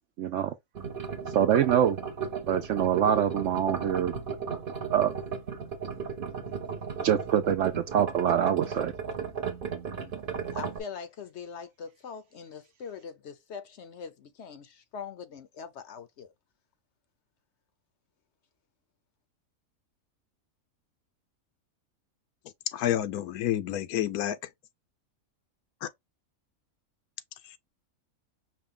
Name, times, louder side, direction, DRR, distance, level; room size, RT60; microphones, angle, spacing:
voice 1, 0.2-0.5 1.2-2.0 2.4-4.1 4.9-5.2 7.0-8.9, right 9 dB, 65° right, 0.8 m, -25 dB
sound 1, 0.7-10.8, right 6 dB, 40° right, 1.0 m, -35 dB
voice 2, 10.5-16.3, left 6 dB, 60° left, 0.8 m, -42 dB
voice 3, 22.7-24.4 25.8-25.9 27.4-27.6, left 12 dB, 85° left, 1.1 m, -29 dB
5.5 x 2.3 x 3.7 m
omnidirectional pair, 1.6 m